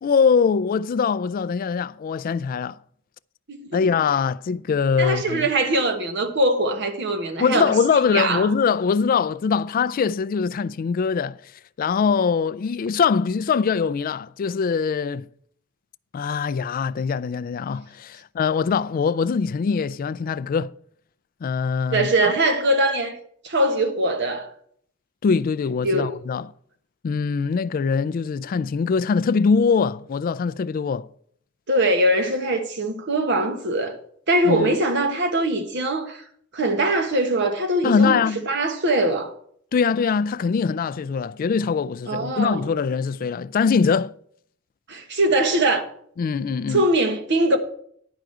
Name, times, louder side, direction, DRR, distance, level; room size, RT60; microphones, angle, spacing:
voice 1, 0.0-2.8 3.7-5.5 7.4-11.5 11.8-15.3 16.1-20.7 21.4-22.3 25.2-26.5 27.0-31.1 34.4-34.8 37.8-38.5 39.7-44.1 46.2-46.9, left 5 dB, 45° left, 0.3 m, -22 dB
voice 2, 5.0-7.7 8.0-8.5 21.9-23.2 23.4-24.5 25.8-26.1 31.7-34.0 34.3-36.2 36.5-39.3 42.1-42.7 44.9-45.8 46.7-47.6, right 1 dB, 60° right, 1.3 m, -22 dB
10.5 x 4.8 x 7.8 m
head